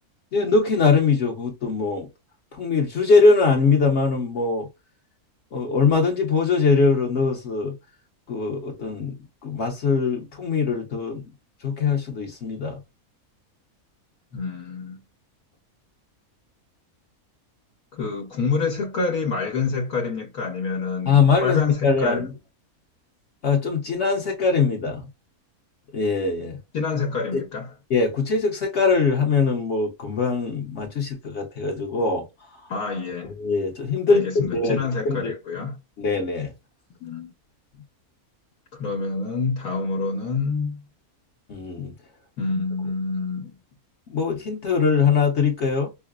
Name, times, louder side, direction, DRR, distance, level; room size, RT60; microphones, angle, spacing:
voice 1, 0.3-2.1 2.5-4.7 5.5-7.8 8.3-9.2 9.4-11.2 11.6-12.8 21.1-22.3 23.4-25.1 25.9-26.6 27.3-27.4 27.9-32.2 33.4-34.8 35.0-35.3 36.0-36.5 41.5-41.9 44.1-45.9, left 4 dB, 55° left, 1.0 m, -22 dB
voice 2, 14.3-15.0 17.9-22.3 26.7-27.7 32.7-33.3 34.1-35.8 37.0-37.3 38.7-40.8 42.4-43.5, left 4 dB, 80° left, 1.3 m, -27 dB
5.5 x 2.0 x 2.2 m
omnidirectional pair, 1.5 m